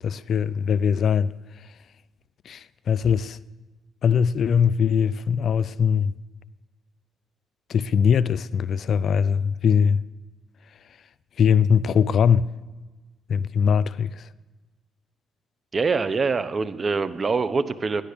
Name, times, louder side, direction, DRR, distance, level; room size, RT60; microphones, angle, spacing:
voice 1, 0.0-1.3 2.5-3.4 4.0-6.1 7.7-10.0 11.4-12.5 13.3-14.3, left 7 dB, 60° left, 0.4 m, -21 dB
voice 2, 15.7-18.0, right 4 dB, 35° right, 0.9 m, -24 dB
17.5 x 11.0 x 6.8 m
cardioid pair, 90°, 0 cm